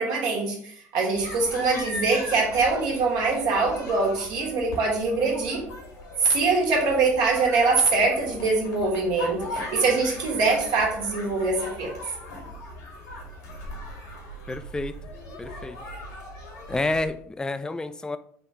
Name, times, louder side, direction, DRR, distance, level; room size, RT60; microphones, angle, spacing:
voice 1, 0.0-5.6 6.2-11.9, right 3 dB, 70° right, -1 dB, 1.4 m, -23 dB
sound 1, 1.1-17.1, left 1 dB, 85° left, 1.7 m, -39 dB
voice 2, 14.5-14.9 15.4-15.8 16.7-18.2, left 2 dB, 10° left, 11 dB, 0.3 m, -29 dB
3.7 x 2.9 x 4.7 m, 0.63 s
hypercardioid pair, 65°, 7 cm